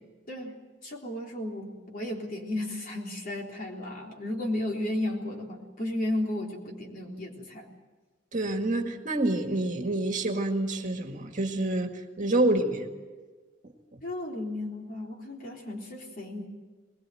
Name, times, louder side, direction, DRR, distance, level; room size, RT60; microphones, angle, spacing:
voice 1, 0.8-7.7 14.0-16.5, left 1 dB, 45° left, 0 dB, 3.7 m, -34 dB
voice 2, 8.3-12.9, right 2 dB, 40° right, 4 dB, 1.9 m, -27 dB
21.5 x 21.0 x 7.8 m, 1.4 s
head